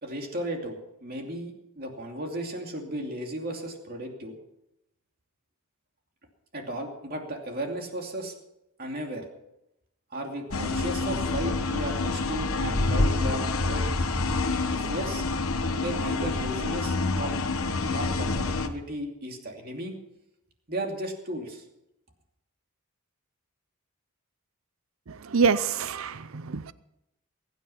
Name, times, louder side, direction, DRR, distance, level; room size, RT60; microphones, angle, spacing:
voice 1, 0.0-4.4 6.5-8.3 8.8-9.2 10.1-14.0 14.7-15.2 15.7-17.4 17.8-19.9 20.7-21.6, right 1 dB, 45° right, 2 dB, 2.7 m, -35 dB
sound 1, 10.5-18.7, left 3 dB, 75° left, 1.2 m, -27 dB
voice 2, 25.1-26.7, right 5 dB, 65° right, 16 dB, 0.6 m, -26 dB
22.0 x 9.5 x 5.8 m, 0.88 s
head